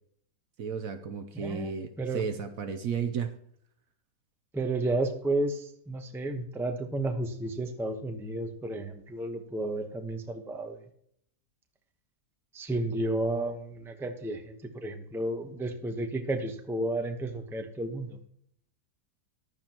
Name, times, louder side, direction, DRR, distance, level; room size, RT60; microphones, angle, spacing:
voice 1, 0.6-3.3, right 6 dB, 65° right, 9 dB, 1.1 m, -33 dB
voice 2, 1.3-1.7 2.0-2.2 4.5-10.8 12.5-18.2, right 2 dB, ahead, 5 dB, 0.7 m, -32 dB
14.5 x 11.0 x 2.9 m, 0.67 s
omnidirectional pair, 1.8 m